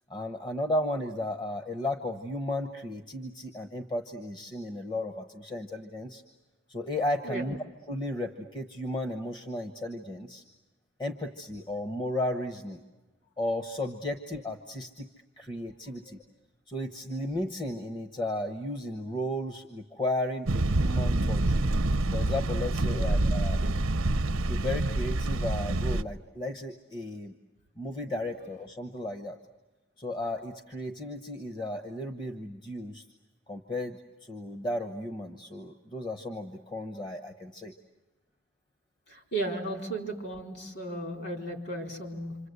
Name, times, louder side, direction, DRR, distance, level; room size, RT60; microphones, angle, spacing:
voice 1, 0.1-6.2 6.7-7.6 7.9-10.4 11.0-12.8 13.4-15.1 15.4-16.2 16.7-21.6 22.1-23.6 24.5-27.3 27.8-29.4 30.0-33.1 33.5-37.7, left 1 dB, 20° left, 4 dB, 1.0 m, -34 dB
sound 1, 20.5-26.0, right 2 dB, 85° right, 0.8 m, -27 dB
voice 2, 39.1-42.4, right 2 dB, 50° left, 3 dB, 4.3 m, -35 dB
27.0 x 27.0 x 8.1 m, 1.1 s
head